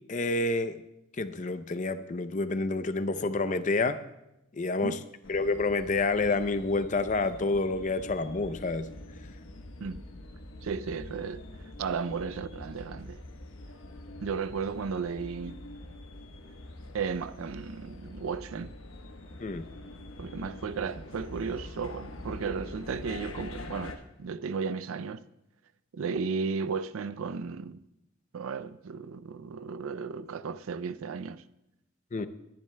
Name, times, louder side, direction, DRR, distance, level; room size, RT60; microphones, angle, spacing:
voice 1, 0.1-0.8 1.2-4.0 4.5-5.0 5.3-8.9 19.4-19.6 32.1-32.3, left 3 dB, 35° left, 0.5 m, -28 dB
sound 1, 5.2-24.0, left 1 dB, 75° left, 1.1 m, -45 dB
voice 2, 10.6-11.5 11.8-13.2 14.2-15.6 16.9-18.7 20.2-25.2 25.9-27.8 28.3-31.4, right 5 dB, 85° right, 0.4 m, -34 dB
20.5 x 10.5 x 2.2 m
head